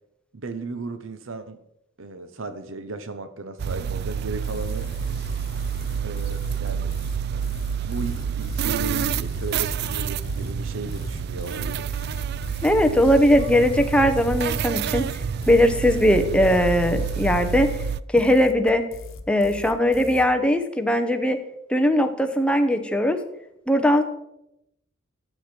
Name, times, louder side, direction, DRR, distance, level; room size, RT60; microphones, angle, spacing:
voice 1, 0.3-1.6 2.0-4.9 6.0-6.9 7.8-11.9, right 3 dB, 70° right, 10 dB, 0.9 m, -35 dB
sound 1, 3.6-18.0, right 7 dB, 50° right, 0.3 m, -28 dB
sound 2, 4.4-20.3, left 4 dB, 80° left, 1.1 m, -40 dB
voice 2, 12.6-15.1 15.5-17.7 18.1-18.8 19.3-21.4 21.7-23.2 23.7-24.0, left 1 dB, 5° left, 6 dB, 0.9 m, -19 dB
13.5 x 8.7 x 4.5 m, 0.82 s
head